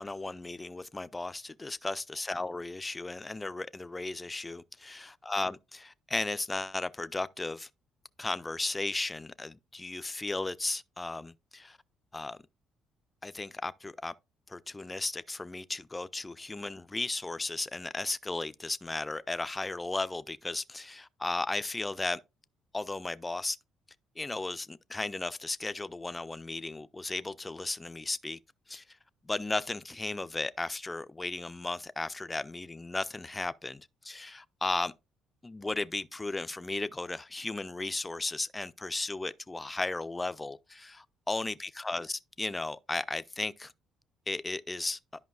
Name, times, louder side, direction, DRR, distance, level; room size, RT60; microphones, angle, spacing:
voice 1, 0.0-7.7 8.2-11.8 12.1-12.4 13.2-14.1 14.5-22.2 22.7-23.6 24.2-28.4 28.7-29.0 29.2-34.9 35.4-43.7 44.3-45.0, left 2 dB, 15° left, 0.3 m, -35 dB
11.5 x 5.4 x 2.3 m
cardioid pair, 135°, 0 cm